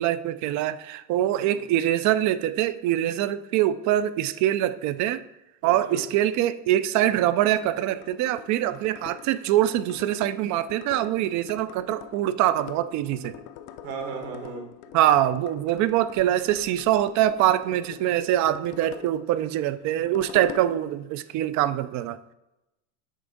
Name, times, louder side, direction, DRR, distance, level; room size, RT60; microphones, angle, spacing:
voice 1, 0.0-5.2 5.6-13.4 14.9-22.2, right 12 dB, 50° right, 14 dB, 0.5 m, -24 dB
voice 2, 5.6-6.1 13.8-14.7, right 5 dB, 75° right, 2 dB, 2.0 m, -36 dB
sound 1, 7.0-21.1, left 10 dB, 60° left, 0.6 m, -45 dB
7.5 x 3.4 x 5.2 m, 0.94 s
supercardioid pair, 110°, 37 cm